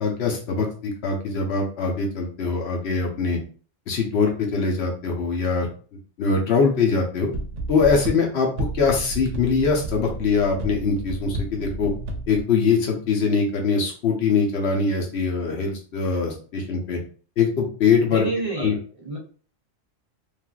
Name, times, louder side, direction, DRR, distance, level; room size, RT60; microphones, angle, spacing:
voice 1, 0.0-3.4 3.9-5.7 6.2-7.3 7.7-8.5 8.7-11.9 12.3-17.0 17.4-18.3 18.6-18.8, left 5 dB, 60° left, 1 dB, 1.0 m, -22 dB
sound 1, 7.3-12.4, right 2 dB, 75° right, 0.9 m, -32 dB
voice 2, 18.1-19.2, right 3 dB, 40° right, -3 dB, 0.5 m, -29 dB
3.2 x 2.5 x 2.3 m, 0.41 s
omnidirectional pair, 1.3 m